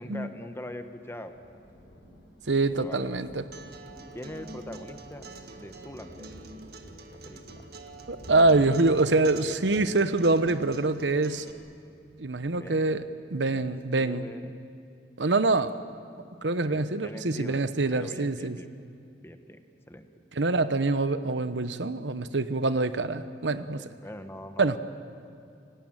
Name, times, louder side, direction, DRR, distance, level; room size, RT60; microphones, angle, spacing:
voice 1, 0.0-1.3 2.7-3.2 4.1-5.3 5.6-6.3 7.1-7.6 12.6-12.8 13.5-14.5 16.6-18.7 19.2-19.6 19.9-20.1 23.8-24.8, left 1 dB, 15° left, 7 dB, 1.4 m, -42 dB
Thunder, 0.6-12.9, equal, 70° left, 6.7 m, -51 dB
voice 2, 2.5-3.4 8.1-11.5 12.2-13.0 13.3-14.3 15.2-15.7 16.4-18.6 20.4-23.8 24.6-24.7, right 3 dB, 85° right, 12 dB, 1.0 m, -25 dB
Acoustic guitar, 3.5-11.5, right 2 dB, 60° right, 1.8 m, -46 dB
28.5 x 18.5 x 9.0 m, 2.5 s
head